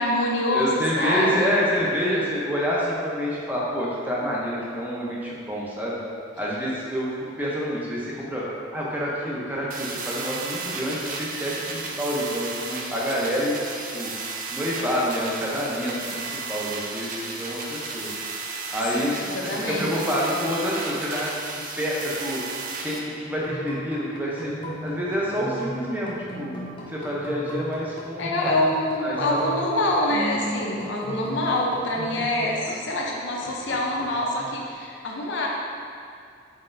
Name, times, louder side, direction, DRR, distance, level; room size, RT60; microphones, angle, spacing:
voice 1, 0.0-1.5 18.9-20.0 28.2-35.5, left 1 dB, 70° left, -1 dB, 0.6 m, -25 dB
voice 2, 0.5-6.0 6.4-8.5 8.7-13.6 13.9-14.1 14.5-18.1 18.7-22.4 22.8-24.5 24.8-26.6 26.9-28.5 29.0-29.4, equal, 10° right, -6 dB, 0.6 m, -27 dB
sound 1, 9.7-23.0, right 4 dB, 45° right, 0.4 m, -34 dB
sound 2, 23.3-33.0 33.4-34.7, equal, 25° left, 0.7 m, -37 dB
4.3 x 4.0 x 2.6 m, 2.4 s
head